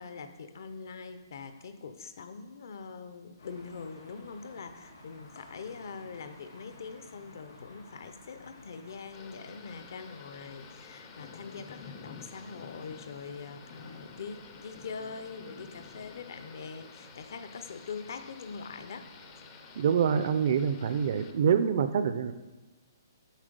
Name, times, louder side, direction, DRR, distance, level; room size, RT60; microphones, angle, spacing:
voice 1, 0.0-19.1, left 5 dB, 60° left, 9 dB, 0.6 m, -43 dB
sound 1, 3.4-21.6, left 2 dB, 85° left, 2.6 m, -54 dB
Thunder / Rain, 9.1-21.3, left 6 dB, 20° left, 0.4 m, -51 dB
voice 2, 19.8-22.3, right 7 dB, 45° right, 11 dB, 0.4 m, -26 dB
7.4 x 4.7 x 5.2 m, 1.2 s
hypercardioid pair, 170°, 2 cm